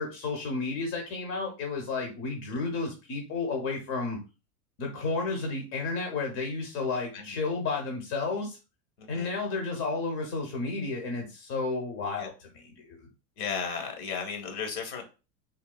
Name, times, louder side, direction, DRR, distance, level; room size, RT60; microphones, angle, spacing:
voice 1, 0.0-4.2 4.8-8.6 9.1-13.1, left 3 dB, 45° left, 2 dB, 0.9 m, -32 dB
voice 2, 9.0-9.3 12.2-12.3 13.4-15.0, left 6 dB, 65° left, 4 dB, 1.2 m, -35 dB
3.7 x 2.4 x 2.3 m, 0.31 s
supercardioid pair, 125°, 47 cm